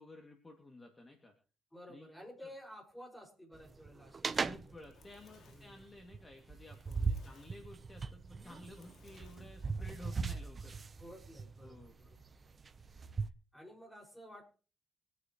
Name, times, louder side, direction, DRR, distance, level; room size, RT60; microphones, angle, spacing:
voice 1, 0.0-1.3 1.9-2.1 2.4-2.5 4.5-10.8 11.6-11.9, left 2 dB, 25° left, 3 dB, 2.4 m, -54 dB
voice 2, 1.7-4.8 5.5-5.9 7.2-7.5 9.6-10.0 11.0-12.2 13.1-14.4, equal, 5° left, 2 dB, 5.7 m, -53 dB
sound 1, 3.5-13.3, right 4 dB, 35° right, 0.8 m, -40 dB
Fire, 4.4-9.9, left 6 dB, 70° left, 2.3 m, -66 dB
25.5 x 9.6 x 3.1 m, 0.37 s
cardioid pair, 90°, 0 cm